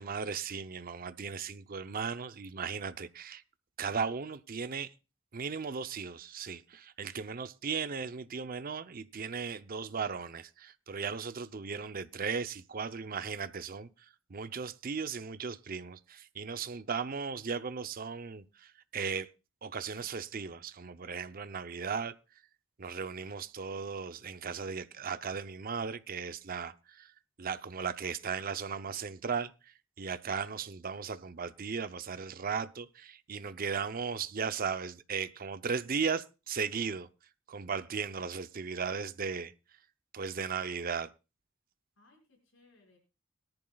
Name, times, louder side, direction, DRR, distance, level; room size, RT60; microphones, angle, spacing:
voice 1, 0.0-3.4 3.8-4.9 5.3-19.3 19.6-22.4 22.8-27.1 27.4-37.1 37.5-39.8 40.1-41.1, right 5 dB, 45° right, 0.6 m, -37 dB
voice 2, 16.3-16.8 42.0-43.0, left 2 dB, 85° left, 5.2 m, -65 dB
21.5 x 10.5 x 2.3 m
head